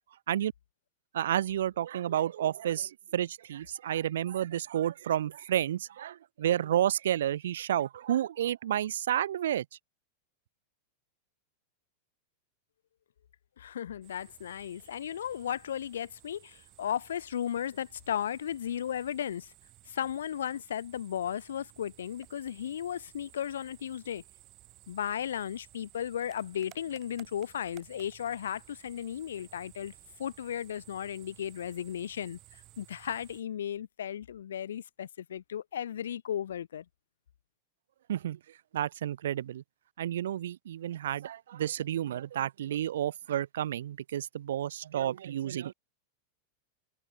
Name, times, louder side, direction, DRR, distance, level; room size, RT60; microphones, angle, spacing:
voice 1, 1.1-9.6 38.1-38.4 38.7-39.6 40.0-45.7, right 11 dB, 60° right, 0.4 m, -31 dB
voice 2, 13.6-19.5 19.9-24.2 24.9-29.9 30.2-36.8, left 9 dB, 65° left, 0.4 m, -35 dB
sound 1, 14.0-33.4, right 16 dB, 35° right, 4.9 m, -57 dB
figure-of-eight pair, 90°, 0 cm